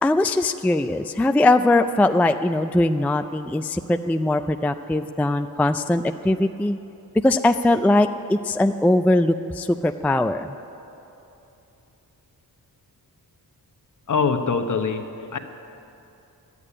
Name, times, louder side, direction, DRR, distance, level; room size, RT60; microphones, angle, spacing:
voice 1, 0.0-6.8 7.2-10.5, left 2 dB, 5° left, 8 dB, 0.3 m, -21 dB
voice 2, 14.1-15.4, left 5 dB, 50° left, 7 dB, 1.0 m, -24 dB
11.5 x 8.4 x 9.9 m, 2.9 s
cardioid pair, 75°, 38 cm